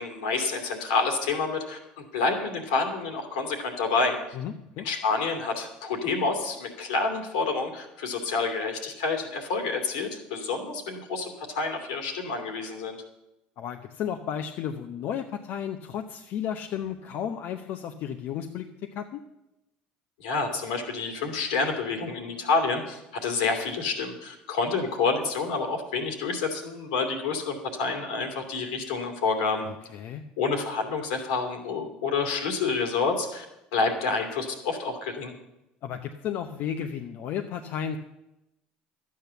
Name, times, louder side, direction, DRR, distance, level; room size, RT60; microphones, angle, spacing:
voice 1, 0.0-4.2 4.8-13.0 20.2-29.7 30.4-33.4 33.7-35.3, left 4 dB, 85° left, 4 dB, 2.6 m, -28 dB
voice 2, 4.3-4.9 13.6-19.2 29.6-30.2 35.8-38.0, left 9 dB, 60° left, 5 dB, 0.9 m, -33 dB
12.0 x 8.6 x 6.9 m, 0.91 s
hypercardioid pair, 80°, 4 cm